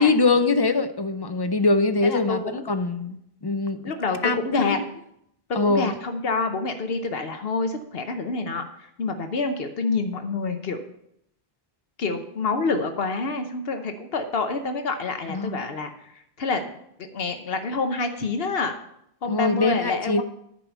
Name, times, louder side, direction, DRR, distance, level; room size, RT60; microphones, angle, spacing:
voice 1, 0.0-3.2 3.4-3.8 4.2-4.8 5.5-5.9 15.3-15.6 19.3-20.2, left 3 dB, 30° left, 9 dB, 0.5 m, -22 dB
voice 2, 2.0-2.6 3.8-4.8 5.5-8.6 9.0-10.8 12.0-15.9 16.4-16.6 17.0-18.8 19.2-20.2, left 3 dB, 70° left, 7 dB, 1.0 m, -27 dB
10.5 x 4.7 x 8.0 m, 0.75 s
omnidirectional pair, 1.0 m